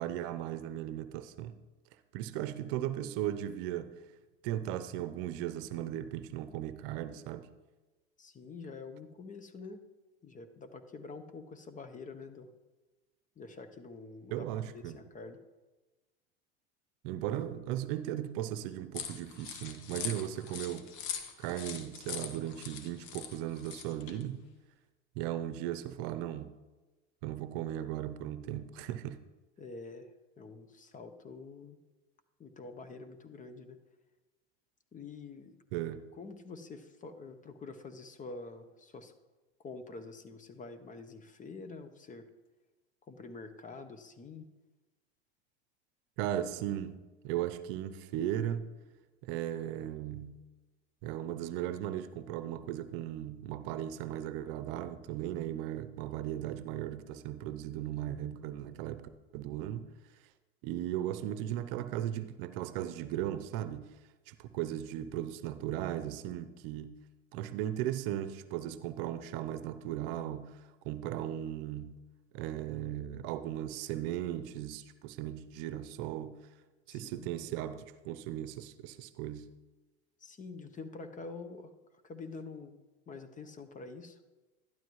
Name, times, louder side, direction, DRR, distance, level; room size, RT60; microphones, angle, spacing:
voice 1, 0.0-1.6 2.1-4.0 4.4-7.5 14.3-15.0 17.0-20.9 21.4-24.5 25.2-26.5 27.2-29.2 35.7-36.1 46.2-48.7 49.2-50.4 51.0-59.9 60.6-63.9 64.3-67.0 67.3-72.0 72.3-76.4 76.9-79.5, right 12 dB, 60° right, 0.7 m, -37 dB
voice 2, 8.2-9.8 10.2-12.5 13.4-15.4 29.6-31.8 32.4-33.8 34.9-35.6 36.2-39.1 39.6-42.3 43.1-44.5 76.9-77.3 80.2-81.7 82.0-82.8 83.1-84.2, left 4 dB, 25° left, 0.9 m, -47 dB
sound 1, 18.9-24.2, left 8 dB, 60° left, 1.2 m, -42 dB
12.0 x 12.0 x 3.1 m
hypercardioid pair, 95°, 31 cm